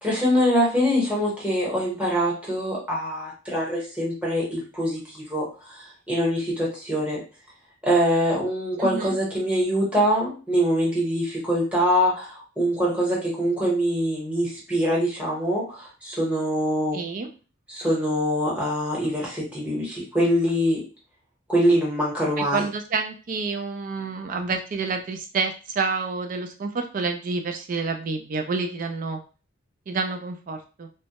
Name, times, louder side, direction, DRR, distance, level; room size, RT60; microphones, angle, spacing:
voice 1, 0.0-7.2 7.8-17.0 17.7-20.8 21.5-22.7, equal, 5° right, -5 dB, 0.9 m, -24 dB
voice 2, 8.8-9.2 16.9-17.3 22.4-29.2 29.9-30.9, right 4 dB, 40° right, 6 dB, 0.3 m, -28 dB
2.1 x 2.0 x 2.8 m, 0.35 s
head